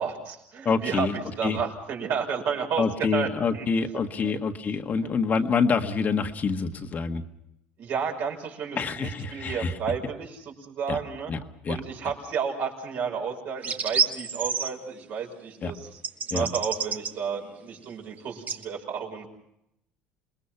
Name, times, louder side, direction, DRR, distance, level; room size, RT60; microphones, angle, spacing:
voice 1, 0.0-3.7 4.2-4.4 5.0-5.1 7.8-11.3 11.7-16.0 16.3-19.3, right 6 dB, 65° right, 1 dB, 5.9 m, -32 dB
voice 2, 0.6-1.1 1.4-1.6 2.8-7.2 8.8-9.7 10.9-11.0 11.3-11.4 11.6-11.8 15.6-15.7 16.3-16.4, left 5 dB, 40° left, 7 dB, 1.7 m, -26 dB
sound 1, 13.6-14.7 16.0-17.1 18.5-18.6, right 6 dB, 40° right, 1.3 m, -28 dB
27.5 x 21.0 x 5.9 m, 0.78 s
supercardioid pair, 90°, 4 cm